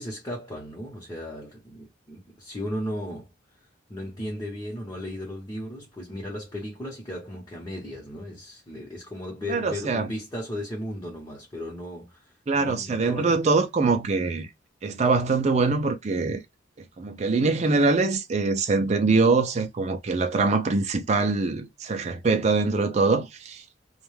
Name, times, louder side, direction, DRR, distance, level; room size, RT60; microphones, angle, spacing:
voice 1, 0.0-3.3 3.9-13.6, left 1 dB, 20° left, 0.8 m, -36 dB
voice 2, 9.5-10.1 12.5-14.5 14.8-16.4 17.0-23.6, right 3 dB, 35° right, 0.4 m, -23 dB
2.3 x 2.2 x 3.2 m
head